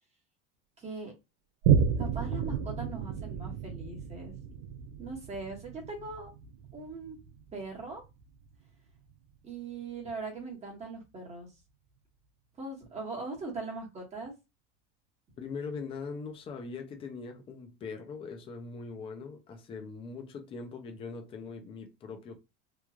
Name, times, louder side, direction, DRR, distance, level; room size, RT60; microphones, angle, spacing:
voice 1, 0.8-1.1 2.0-4.3 5.0-6.3 6.7-7.2 7.5-8.0 9.4-11.5 12.6-14.3, right 3 dB, 20° right, 1.0 m, -40 dB
Boom, 1.6-8.6 9.1-9.2, right 7 dB, 75° right, 0.4 m, -32 dB
voice 2, 15.4-22.3, left 4 dB, 20° left, 0.4 m, -41 dB
3.1 x 2.3 x 2.3 m
cardioid pair, 155°, 31 cm